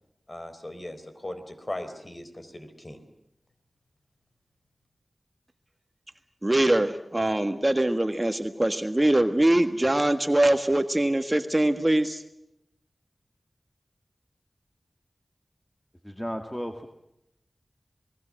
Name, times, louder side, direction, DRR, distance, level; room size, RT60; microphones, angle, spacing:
voice 1, 0.3-3.0, left 1 dB, 35° left, 8 dB, 4.1 m, -38 dB
voice 2, 6.4-12.2, right 1 dB, 25° right, 8 dB, 1.5 m, -23 dB
voice 3, 16.0-16.9, equal, 10° left, 5 dB, 2.0 m, -34 dB
29.0 x 20.5 x 7.7 m, 0.81 s
wide cardioid pair, 60°, 0 cm